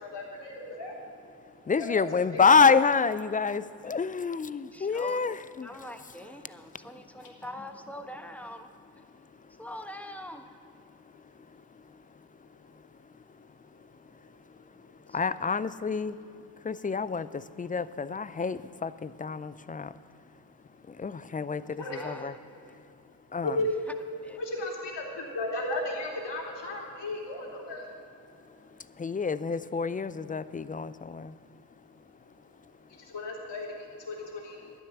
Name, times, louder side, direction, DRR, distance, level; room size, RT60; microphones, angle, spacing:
voice 1, 0.0-1.0 1.7-1.9 2.5-2.6 14.5-14.6 15.0-15.1 21.8-22.0 23.4-23.7 24.4-28.0 32.9-34.7, left 2 dB, 60° left, -1 dB, 3.0 m, -35 dB
voice 2, 1.7-5.7 15.1-16.2 16.7-17.3 17.6-19.9 21.0-22.3 23.3-23.6 29.0-31.3, left 5 dB, 20° left, 16 dB, 0.4 m, -27 dB
voice 3, 4.7-5.2 5.6-8.7 9.6-10.5 15.1-15.2 21.8-22.7 24.2-24.4, left 1 dB, 5° left, 6 dB, 1.2 m, -43 dB
11.5 x 9.8 x 7.1 m, 2.5 s
supercardioid pair, 50°, 49 cm